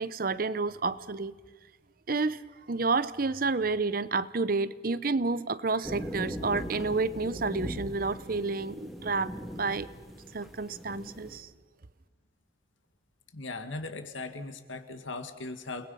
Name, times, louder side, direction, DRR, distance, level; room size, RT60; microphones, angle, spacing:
voice 1, 0.0-1.3 2.1-2.4 2.7-9.3 9.6-9.9 10.3-11.5, right 3 dB, 45° right, 16 dB, 0.8 m, -30 dB
sound 1, 5.8-11.4, equal, ahead, 2.7 m, -40 dB
voice 2, 13.3-15.9, left 3 dB, 75° left, 8 dB, 2.0 m, -38 dB
29.5 x 20.5 x 5.6 m, 1.4 s
head